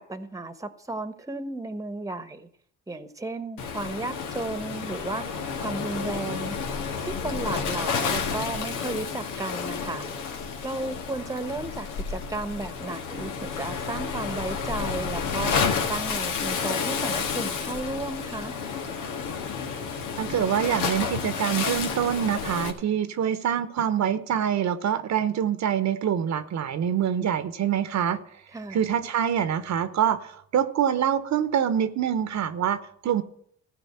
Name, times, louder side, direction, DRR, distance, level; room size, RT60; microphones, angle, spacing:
voice 1, 0.0-2.5 2.9-5.2 5.6-6.6 7.0-10.0 10.6-18.5 28.5-28.8, right 2 dB, 10° right, 12 dB, 1.2 m, -34 dB
Waves surf, 3.6-22.7, left 5 dB, 90° left, 1.9 m, -30 dB
voice 2, 20.2-28.2 28.7-33.2, right 9 dB, 65° right, 12 dB, 1.1 m, -25 dB
15.0 x 5.1 x 8.7 m, 0.66 s
cardioid pair, 90°, 30 cm